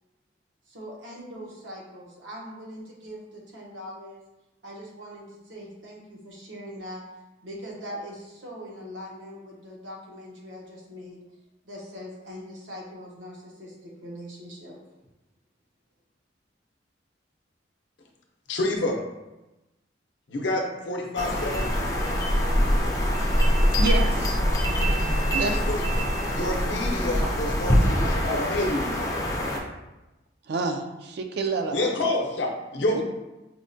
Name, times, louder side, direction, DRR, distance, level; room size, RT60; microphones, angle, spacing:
voice 1, 0.7-4.2 4.6-7.0 7.4-11.2 11.6-14.8, equal, 80° right, -3 dB, 0.9 m, -41 dB
voice 2, 18.5-19.0 20.3-21.7 25.4-25.8 26.3-29.1 31.7-33.0, left 1 dB, 70° left, 0 dB, 0.6 m, -28 dB
sound 1, 21.2-29.6, equal, 20° left, 0.4 m, -24 dB
voice 3, 23.8-24.4 25.3-25.7 30.5-32.0 32.9-33.0, right 3 dB, 60° right, 5 dB, 0.3 m, -29 dB
4.4 x 2.1 x 2.6 m, 1.0 s
head